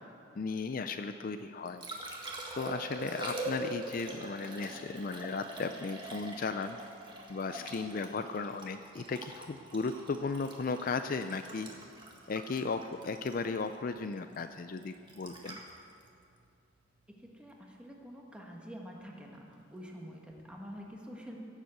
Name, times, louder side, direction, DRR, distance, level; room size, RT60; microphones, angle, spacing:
voice 1, 0.4-1.8 2.6-6.8 7.3-11.7 12.3-15.6, left 4 dB, 45° left, 9 dB, 0.4 m, -36 dB
Liquid, 1.4-17.5 20.3-20.4, right 1 dB, 25° right, 1.6 m, -44 dB
voice 2, 17.2-21.4, equal, 5° right, -1 dB, 1.6 m, -47 dB
16.5 x 7.4 x 7.9 m, 2.5 s
head